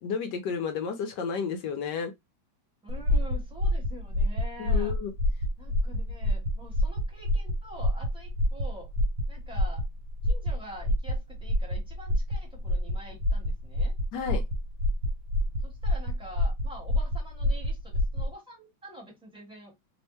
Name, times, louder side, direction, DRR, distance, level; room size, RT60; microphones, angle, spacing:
voice 1, 0.0-2.1 4.6-5.1 14.1-14.4, left 6 dB, 70° left, 1.1 m, -31 dB
voice 2, 2.8-4.9 5.6-8.9 9.3-9.8 10.2-13.9 15.6-19.7, equal, 5° right, 0.8 m, -46 dB
sound 1, 2.9-18.3, left 1 dB, 75° right, 1.5 m, -27 dB
3.4 x 2.1 x 3.0 m
omnidirectional pair, 2.2 m